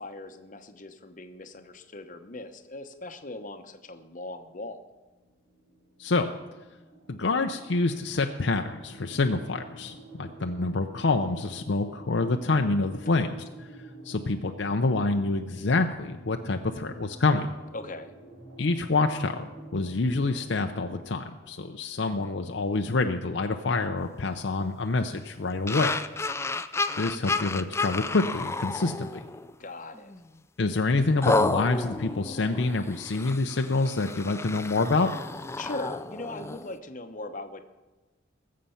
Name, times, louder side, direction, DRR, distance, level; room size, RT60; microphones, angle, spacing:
voice 1, 0.0-4.8 17.7-18.1 29.6-30.1 35.6-37.6, left 2 dB, 40° left, 7 dB, 1.0 m, -39 dB
sound 1, 4.1-21.0, right 2 dB, 85° right, 5.6 m, -48 dB
voice 2, 6.0-6.3 7.1-13.7 14.0-17.5 18.6-26.0 27.0-29.2 30.6-35.1, left 3 dB, 65° left, 5 dB, 0.6 m, -27 dB
sound 2, 25.7-29.5 30.0-30.2 31.2-36.8, left 3 dB, 15° left, 0.4 m, -31 dB
20.0 x 7.6 x 5.7 m, 1.2 s
head